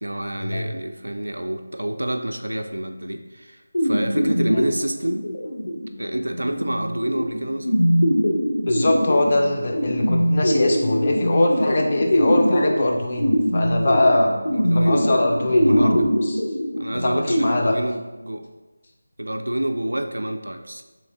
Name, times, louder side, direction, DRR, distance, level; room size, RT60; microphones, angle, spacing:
voice 1, 0.0-5.3 6.0-7.8 14.5-15.1 15.6-16.2 16.8-18.5 19.2-20.8, right 1 dB, 75° right, 6 dB, 0.3 m, -28 dB
sound 1, 3.7-17.5, equal, 75° left, 0.7 m, -22 dB
voice 2, 8.7-14.3 14.7-16.0 16.2-16.4 17.0-17.7, left 2 dB, 35° left, 1 dB, 0.5 m, -22 dB
3.2 x 2.6 x 3.7 m, 1.2 s
figure-of-eight pair, 165°, 0 cm